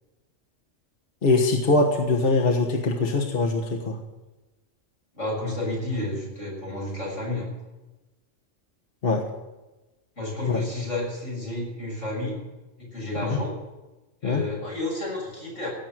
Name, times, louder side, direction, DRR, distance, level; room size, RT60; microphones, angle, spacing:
voice 1, 1.2-4.0 9.0-9.2 10.5-10.6 13.2-13.4 14.2-14.4, left 3 dB, 50° left, 1 dB, 1.5 m, -22 dB
voice 2, 5.1-7.5 10.2-12.4 12.8-13.5 14.2-15.7, left 2 dB, 85° left, -4 dB, 7.5 m, -31 dB
17.0 x 7.6 x 9.2 m, 1.1 s
omnidirectional pair, 1.3 m